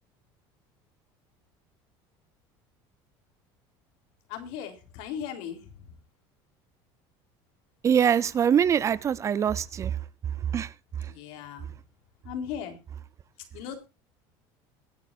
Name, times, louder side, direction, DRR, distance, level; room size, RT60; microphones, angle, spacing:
voice 1, 4.3-5.9 11.1-11.7 12.2-12.8 13.5-13.8, left 8 dB, 75° left, 3.6 m, -37 dB
voice 2, 7.8-10.0 10.5-10.7 11.0-11.1, right 8 dB, 30° right, 0.6 m, -23 dB
22.0 x 9.4 x 2.6 m
cardioid pair, 140°, 10 cm